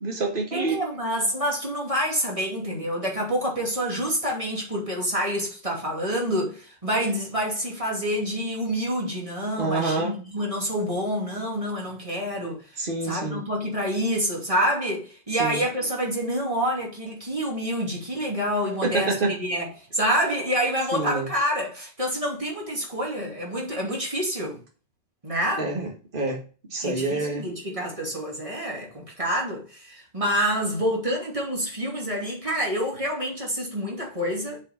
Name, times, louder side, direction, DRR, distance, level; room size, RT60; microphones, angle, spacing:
voice 1, 0.0-0.8 9.6-10.1 12.8-13.4 15.4-15.6 18.8-19.3 20.9-21.3 25.6-26.4 26.7-27.5, right 3 dB, 55° right, 1.9 m, -27 dB
voice 2, 0.5-24.6 25.2-25.7 26.8-34.6, equal, 35° right, 2.7 m, -27 dB
7.2 x 5.1 x 5.2 m
omnidirectional pair, 1.0 m